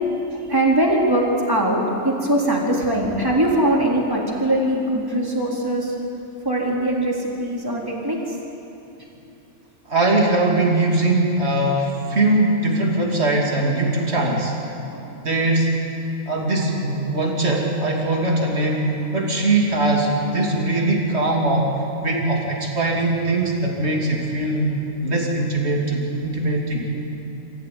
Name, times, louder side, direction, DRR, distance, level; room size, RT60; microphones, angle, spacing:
voice 1, 0.5-5.9 6.5-8.2 14.9-15.0, right 1 dB, 15° right, -3 dB, 3.8 m, -21 dB
voice 2, 9.9-14.6 15.2-15.8 16.3-21.7 22.0-24.7 25.0-26.9, right 2 dB, 55° right, -2 dB, 3.3 m, -21 dB
27.0 x 15.5 x 9.7 m, 2.8 s
omnidirectional pair, 1.3 m